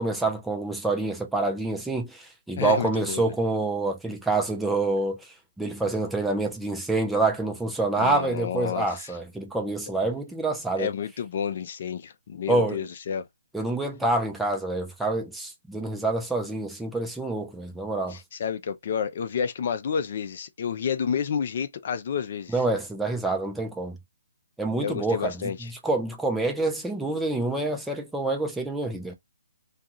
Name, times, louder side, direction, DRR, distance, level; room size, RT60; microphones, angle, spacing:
voice 1, 0.0-5.3 5.6-10.9 12.5-12.8 13.5-18.2 22.5-24.0 24.6-29.1, right 2 dB, 5° right, 0.5 m, -27 dB
voice 2, 2.6-3.2 8.0-9.1 10.8-13.2 18.1-22.6 24.8-25.7, left 7 dB, 50° left, 0.5 m, -30 dB
2.4 x 2.3 x 2.8 m
hypercardioid pair, 150°, 0 cm